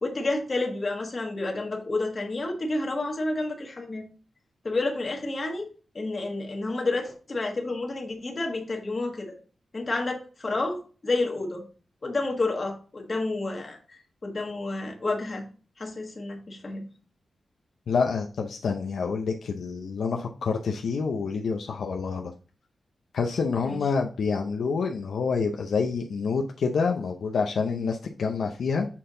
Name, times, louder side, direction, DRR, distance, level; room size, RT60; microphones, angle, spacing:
voice 1, 0.0-4.0 4.6-5.7 5.9-9.3 9.7-10.8 11.0-11.6 12.0-15.5 15.8-16.9 23.6-23.8, left 2 dB, 30° left, 1 dB, 1.5 m, -30 dB
voice 2, 17.9-22.3 23.1-28.9, left 5 dB, 75° left, 3 dB, 0.6 m, -27 dB
7.3 x 4.4 x 3.7 m, 0.37 s
wide cardioid pair, 170°, 0 cm